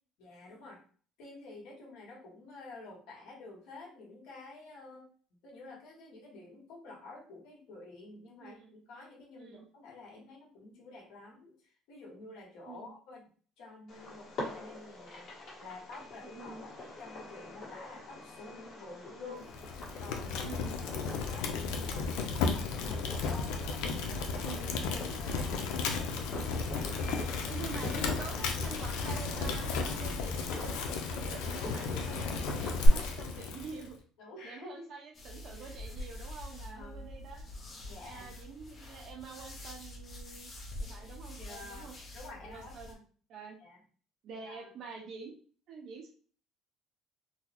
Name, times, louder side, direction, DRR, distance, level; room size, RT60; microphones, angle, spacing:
voice 1, 0.2-0.8 1.2-13.2 13.6-15.3 15.6-19.4 20.0-20.6 20.9-24.3 24.9-25.8 34.2-34.9 36.5-37.0 37.9-38.3 41.4-43.0 43.6-43.8 44.4-44.7, left 3 dB, 70° left, -2 dB, 1.4 m, -50 dB
voice 2, 8.4-8.7 9.4-9.7 12.7-12.9 16.2-16.6 19.2-19.4 20.4-20.7 24.4-24.8 26.9-27.2 27.4-30.8 31.1-34.0 34.4-37.4 38.0-40.5 40.8-41.9 42.4-42.9 43.3-43.6 44.2-45.3 45.7-46.3, right 5 dB, 50° right, 2 dB, 0.7 m, -47 dB
Fireworks, 13.9-32.9, left 2 dB, 50° left, 1.4 m, -42 dB
Fire, 19.5-33.9, left 4 dB, 85° left, 0.5 m, -34 dB
sound 1, 35.1-42.9, left 1 dB, 25° left, 0.6 m, -46 dB
3.8 x 2.0 x 2.9 m, 0.43 s
cardioid pair, 150°, 0 cm